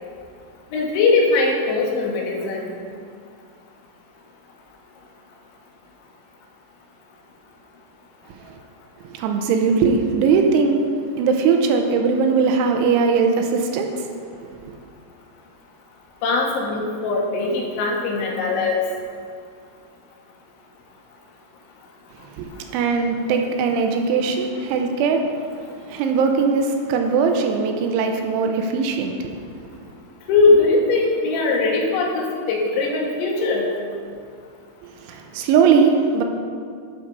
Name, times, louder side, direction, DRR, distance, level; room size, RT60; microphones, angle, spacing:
voice 1, 0.7-2.7 16.2-18.8 30.3-33.7, left 3 dB, 75° left, -1 dB, 3.3 m, -20 dB
voice 2, 9.0-10.8 11.2-14.1 14.4-14.8 22.4-25.2 25.9-29.3 29.6-29.7 34.8-36.2, right 5 dB, 85° right, 4 dB, 3.0 m, -20 dB
12.0 x 4.2 x 5.3 m, 2.2 s
omnidirectional pair, 5.6 m